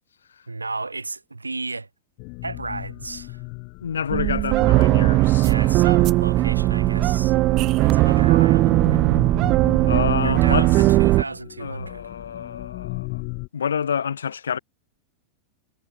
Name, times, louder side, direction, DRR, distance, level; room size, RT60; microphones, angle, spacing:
voice 1, 0.5-1.9 2.4-3.4 5.4-9.3 10.2-12.1, right 3 dB, 80° right, 2.7 m, -34 dB
sound 1, 2.2-13.5, left 36 dB, 45° left, 4.5 m, -37 dB
voice 2, 3.8-5.7 5.9-6.1 9.9-10.7 11.6-13.2 13.5-14.6, left 7 dB, 70° left, 2.5 m, -28 dB
sound 2, 4.1-11.2, right 18 dB, 40° right, 0.7 m, -18 dB
figure-of-eight pair, 90°, 0 cm